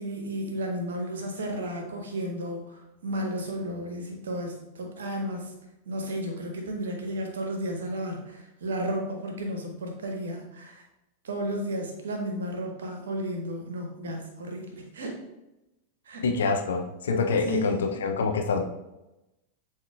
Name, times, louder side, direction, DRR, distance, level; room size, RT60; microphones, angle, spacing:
voice 1, 0.0-5.5 5.8-10.8 11.2-15.2 16.0-16.3 17.4-18.0, equal, 65° right, 3 dB, 1.0 m, -33 dB
voice 2, 16.2-18.6, left 4 dB, 65° left, 4 dB, 0.6 m, -26 dB
7.2 x 2.9 x 2.4 m, 0.95 s
figure-of-eight pair, 90°, 0 cm